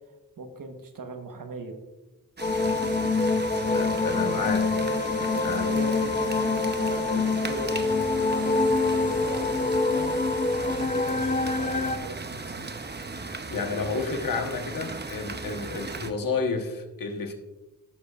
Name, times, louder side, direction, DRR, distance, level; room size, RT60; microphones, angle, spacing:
voice 1, 0.4-1.8 4.2-4.3 5.2-10.1 10.5-12.7, right 3 dB, 75° right, 5 dB, 1.2 m, -39 dB
sound 1, 2.4-12.0, left 3 dB, 25° left, 0.6 m, -25 dB
sound 2, 2.4-16.1, right 3 dB, 30° right, 0.8 m, -37 dB
voice 2, 3.4-5.0 5.4-5.7 13.5-17.3, left 4 dB, 85° left, 4 dB, 1.3 m, -31 dB
14.5 x 6.7 x 2.4 m, 1.1 s
cardioid pair, 60°, 33 cm